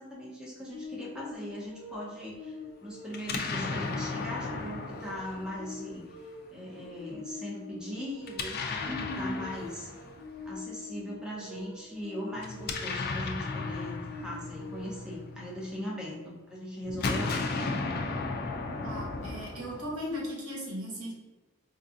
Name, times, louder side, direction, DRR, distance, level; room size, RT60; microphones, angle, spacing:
voice 1, 0.0-6.0 6.5-9.9 10.4-17.4, left 1 dB, 5° right, -4 dB, 0.6 m, -40 dB
sound 1, 0.7-15.2, left 3 dB, 45° right, 1.4 m, -45 dB
Explosion, 3.1-6.2 8.2-10.5 12.4-15.8 16.8-20.2, left 3 dB, 45° left, 0.4 m, -35 dB
voice 2, 8.9-9.5 18.8-21.1, equal, 75° right, -2 dB, 1.0 m, -37 dB
4.4 x 2.4 x 2.6 m, 1.2 s
head